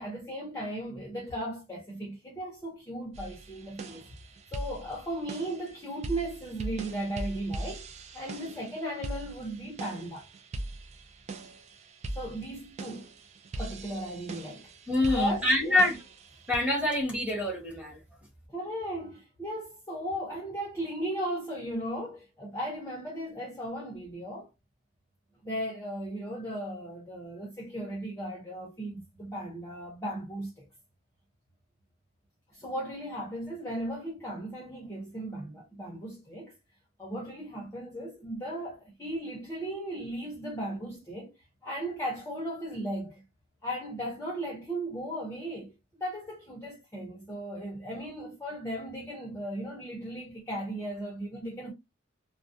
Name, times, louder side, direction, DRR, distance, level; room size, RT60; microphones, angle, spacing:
voice 1, 0.0-4.1 4.5-7.8 8.1-10.3 12.2-13.1 13.6-14.7 15.2-15.8 18.5-24.5 25.4-30.7 32.5-36.5 37.0-41.3 41.6-43.2 43.6-51.7, right 1 dB, 15° left, 0.7 m, -36 dB
sound 1, 3.1-16.6, right 2 dB, 35° right, 0.3 m, -41 dB
voice 2, 14.9-16.0 16.5-18.0, left 1 dB, 5° right, 1.0 m, -26 dB
2.3 x 2.1 x 2.6 m
head